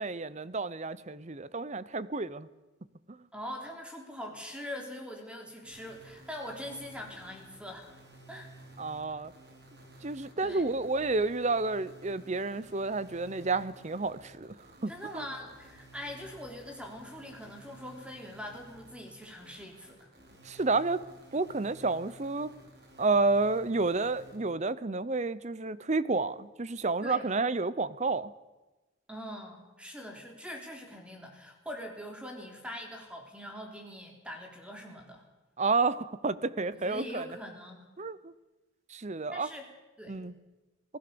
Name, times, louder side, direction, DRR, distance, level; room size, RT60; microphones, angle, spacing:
voice 1, 0.0-2.5 3.1-3.2 8.8-9.3 10.0-14.5 14.8-15.2 20.4-21.0 21.3-22.5 23.0-28.3 35.6-37.3 38.0-38.3 38.9-39.5 40.1-40.3, right 3 dB, 35° right, 17 dB, 0.7 m, -30 dB
voice 2, 3.3-7.9 8.3-8.5 10.4-10.7 14.9-20.1 27.0-27.3 29.1-35.2 36.7-37.8 39.3-39.7 40.0-40.2, left 1 dB, 5° right, 2 dB, 3.7 m, -43 dB
sound 1, 5.6-24.4, right 1 dB, 50° right, 5.1 m, -54 dB
27.0 x 18.0 x 7.0 m, 1.1 s
head